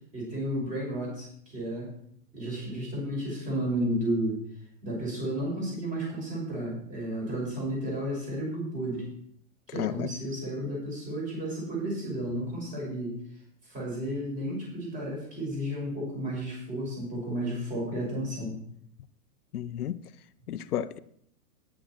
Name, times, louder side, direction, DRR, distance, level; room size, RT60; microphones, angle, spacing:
voice 1, 0.1-1.9 2.3-4.4 4.8-9.0 9.7-13.2 13.6-18.6, right 1 dB, 15° right, 5.5 m, -32 dB
voice 2, 9.7-10.1 19.5-20.0 20.5-21.0, left 10 dB, 90° left, 0.8 m, -32 dB
10.0 x 9.9 x 4.4 m
hypercardioid pair, 160°, 44 cm